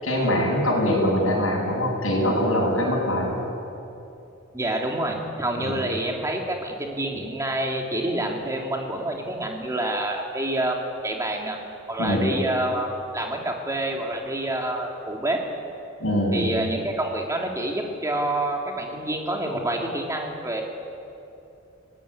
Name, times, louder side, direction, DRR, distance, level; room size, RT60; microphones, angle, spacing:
voice 1, 0.0-3.5 5.6-5.7 12.0-12.3 16.0-16.7, equal, 80° left, -2 dB, 7.7 m, -23 dB
voice 2, 4.5-11.6 11.9-12.9 13.1-15.4 16.3-20.6, right 1 dB, 15° right, 1 dB, 2.8 m, -27 dB
23.5 x 18.5 x 9.9 m, 2.8 s
head